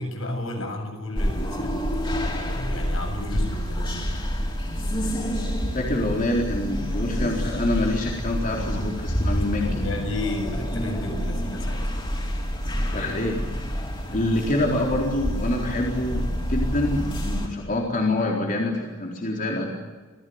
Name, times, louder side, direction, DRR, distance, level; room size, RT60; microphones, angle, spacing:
voice 1, 0.0-4.1 8.5-8.8 9.6-11.9, left 1 dB, 75° left, 4 dB, 7.4 m, -33 dB
sound 1, 1.1-17.5, equal, 25° left, 5.9 m, -28 dB
voice 2, 5.7-9.8 12.9-13.4 13.8-13.9 14.1-19.7, left 1 dB, 40° left, -1 dB, 4.1 m, -26 dB
28.5 x 16.5 x 9.6 m, 1.3 s
head